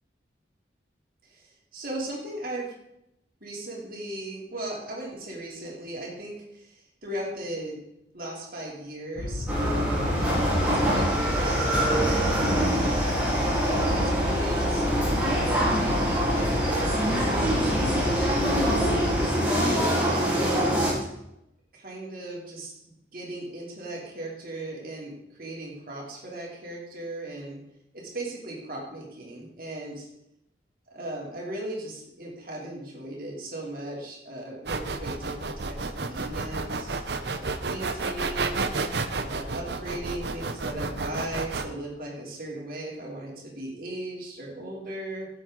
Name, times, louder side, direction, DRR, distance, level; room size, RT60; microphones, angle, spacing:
voice 1, 1.3-2.7 3.4-7.8 8.1-10.0 10.6-13.0 13.6-14.8 15.2-18.1 19.6-20.5 21.7-22.7 23.1-27.6 27.9-30.1 30.9-38.6 39.2-45.3, right 1 dB, 50° right, -2 dB, 3.1 m, -37 dB
sound 1, 9.1-19.3, left 1 dB, 75° left, 0.8 m, -31 dB
sound 2, 9.5-20.9, equal, 10° right, 3.6 m, -24 dB
sound 3, 34.6-41.6, right 3 dB, 70° right, 0.8 m, -31 dB
15.5 x 7.7 x 3.9 m, 0.82 s
head